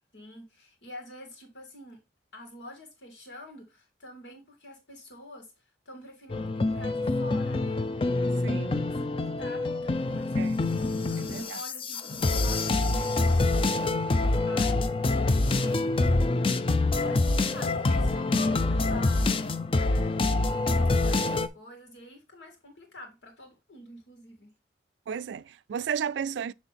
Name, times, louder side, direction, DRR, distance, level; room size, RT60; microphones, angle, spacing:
voice 1, 0.1-2.0 2.3-7.8 8.9-10.5 10.9-13.8 14.1-15.0 15.3-16.3 16.9-24.5, left 1 dB, 85° left, 2.4 m, -47 dB
sound 1, 6.3-21.5, left 2 dB, 30° left, 0.4 m, -26 dB
voice 2, 8.4-8.8 10.4-10.6 11.2-11.6 25.1-26.5, right 7 dB, 80° right, 0.3 m, -33 dB
7.5 x 3.6 x 4.1 m
head